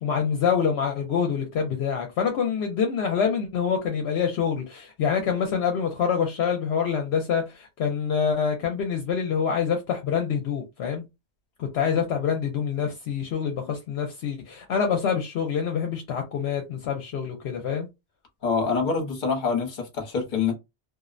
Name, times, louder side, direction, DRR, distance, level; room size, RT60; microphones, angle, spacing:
voice 1, 0.0-11.0 11.6-17.9, left 7 dB, 70° left, 0.8 m, -26 dB
voice 2, 18.4-20.5, left 5 dB, 50° left, 0.9 m, -25 dB
2.4 x 2.0 x 2.4 m
omnidirectional pair, 1.2 m